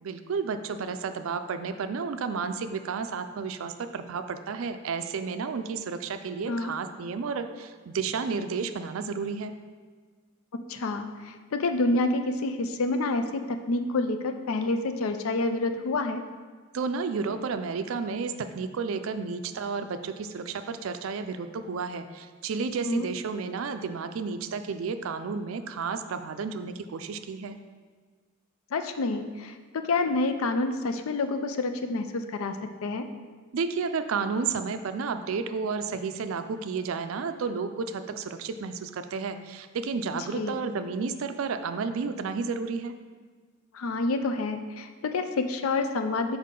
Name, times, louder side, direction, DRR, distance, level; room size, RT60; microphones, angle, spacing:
voice 1, 0.0-9.5 16.7-27.6 33.5-43.0, right 5 dB, 70° right, 9 dB, 0.4 m, -32 dB
voice 2, 10.7-16.2 22.8-23.1 28.7-32.6 32.8-33.1 40.3-40.5 43.7-46.4, left 3 dB, 75° left, 7 dB, 0.4 m, -28 dB
5.6 x 4.6 x 3.7 m, 1.5 s
head